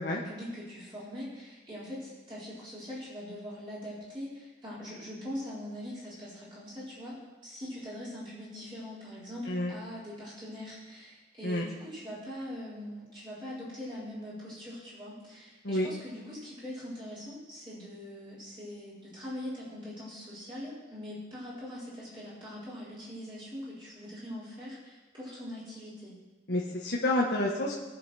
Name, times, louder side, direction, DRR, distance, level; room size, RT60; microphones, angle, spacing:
voice 1, 0.1-7.2 7.4-26.1, equal, 25° right, -10 dB, 4.6 m, -42 dB
voice 2, 26.5-27.8, left 1 dB, 65° left, -3 dB, 1.5 m, -29 dB
21.0 x 7.0 x 4.3 m, 1.2 s
head